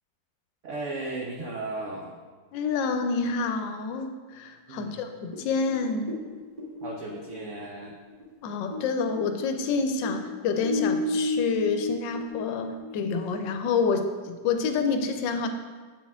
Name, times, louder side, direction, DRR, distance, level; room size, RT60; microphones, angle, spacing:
voice 1, 0.6-2.2 4.7-5.0 6.8-7.9, right 2 dB, 80° right, 1 dB, 0.6 m, -35 dB
voice 2, 2.5-6.1 8.4-15.5, left 4 dB, 85° left, 6 dB, 1.3 m, -28 dB
sound 1, 5.3-8.9 9.1-13.2, left 2 dB, 30° right, 1.9 m, -32 dB
7.8 x 4.3 x 3.5 m, 1.4 s
omnidirectional pair, 2.0 m